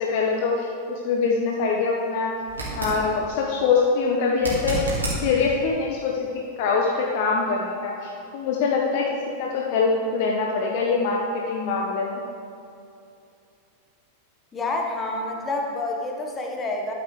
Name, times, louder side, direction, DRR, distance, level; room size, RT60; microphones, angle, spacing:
voice 1, 0.0-2.3 2.7-4.9 5.2-9.1 9.4-12.2, left 4 dB, 50° left, -1 dB, 0.8 m, -24 dB
sound 1, 2.5-3.0 4.3-5.2 8.2-8.3, right 1 dB, 75° right, 2.4 m, -28 dB
voice 2, 14.5-16.9, left 2 dB, 20° left, 1 dB, 1.3 m, -28 dB
12.0 x 8.0 x 3.2 m, 2.6 s
figure-of-eight pair, 90°, 0 cm